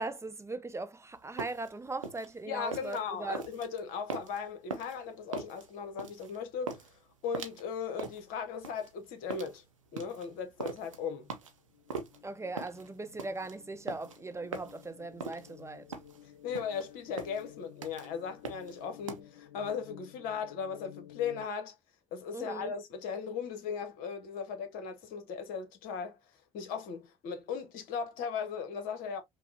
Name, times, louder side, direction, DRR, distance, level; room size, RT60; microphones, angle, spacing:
voice 1, 0.0-3.4 12.2-15.9 22.3-22.7, right 3 dB, 15° right, 0.5 m, -39 dB
sound 1, 1.2-19.2, right 4 dB, 90° right, 0.6 m, -42 dB
voice 2, 2.5-6.8 7.2-9.6 9.9-11.3 16.4-21.7 22.1-26.2 26.5-29.2, left 6 dB, 65° left, 0.9 m, -37 dB
sound 2, 10.9-21.5, left 12 dB, 85° left, 0.5 m, -54 dB
5.5 x 2.0 x 2.6 m
figure-of-eight pair, 50°, 16 cm